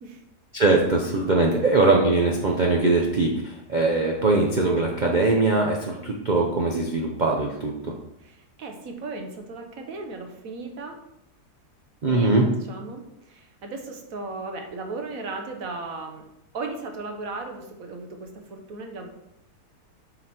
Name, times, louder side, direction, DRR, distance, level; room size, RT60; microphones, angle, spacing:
voice 1, 0.5-8.0 12.0-12.5, right 3 dB, 40° right, 0 dB, 0.7 m, -21 dB
voice 2, 8.2-11.0 12.1-16.3 16.5-19.1, right 3 dB, 65° right, 4 dB, 1.4 m, -36 dB
7.7 x 4.2 x 4.4 m, 0.82 s
omnidirectional pair, 1.6 m